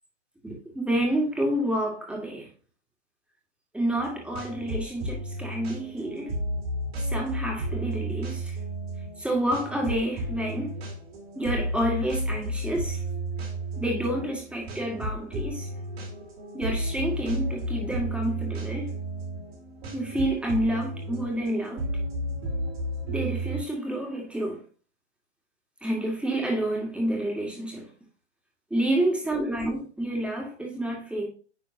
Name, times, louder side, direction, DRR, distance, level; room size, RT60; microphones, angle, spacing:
voice 1, 0.4-2.5 3.7-6.3 7.1-8.5 9.2-10.7 11.4-13.0 13.8-15.7 16.5-19.0 19.9-21.8 23.1-24.6 25.8-27.9 28.7-31.3, right 1 dB, 5° right, 2.4 m, -29 dB
sound 1, 4.0-23.6, right 1 dB, 60° right, 3.6 m, -33 dB
10.0 x 4.2 x 2.9 m
hypercardioid pair, 125°, 35 cm